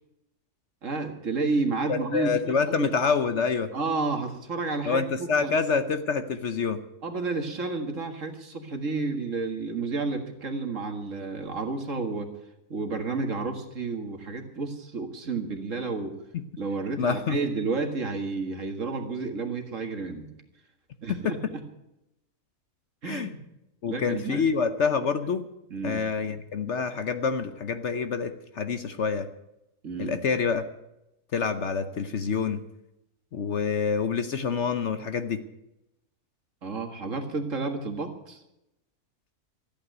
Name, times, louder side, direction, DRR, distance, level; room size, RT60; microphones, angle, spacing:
voice 1, 0.8-2.9 3.7-5.5 7.0-12.3 12.7-16.2 16.6-20.3 21.0-21.6 23.0-23.4 23.9-24.5 25.7-26.0 29.8-30.2 36.6-38.4, right 3 dB, 55° right, 4 dB, 2.1 m, -31 dB
voice 2, 1.9-3.7 4.8-6.8 16.3-16.4 17.0-17.4 21.1-21.5 23.0-23.3 23.8-25.4 25.8-29.3 30.0-30.7 31.3-32.6 33.3-35.4, left 5 dB, 55° left, 9 dB, 1.0 m, -27 dB
14.0 x 8.8 x 9.2 m, 0.88 s
omnidirectional pair, 1.6 m